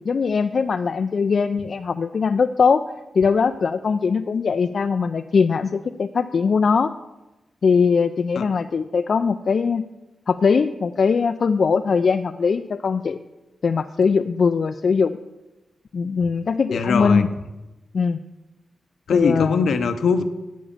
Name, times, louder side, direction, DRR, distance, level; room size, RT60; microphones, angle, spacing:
voice 1, 0.1-2.8 3.1-6.9 7.6-9.9 10.3-13.2 13.6-15.2 15.9-17.3 17.9-18.2 19.1-19.7, left 5 dB, 65° left, 8 dB, 0.4 m, -21 dB
voice 2, 16.7-17.2 19.1-20.2, left 5 dB, 80° left, 9 dB, 0.8 m, -21 dB
8.3 x 7.3 x 7.0 m, 1.0 s
supercardioid pair, 45°, 0 cm